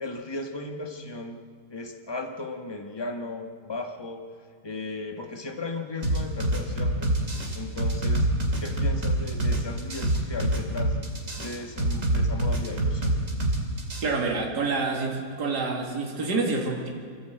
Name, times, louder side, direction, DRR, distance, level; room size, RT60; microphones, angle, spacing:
voice 1, 0.0-1.4 1.7-4.3 4.6-7.1 7.5-8.3 8.6-11.0 11.4-13.1, left 3 dB, 15° left, 4 dB, 1.3 m, -36 dB
sound 1, 6.0-14.0, right 1 dB, 40° right, 3.1 m, -25 dB
voice 2, 14.0-16.9, right 3 dB, 55° right, 0 dB, 2.8 m, -27 dB
25.0 x 15.0 x 8.0 m, 2.1 s
omnidirectional pair, 2.1 m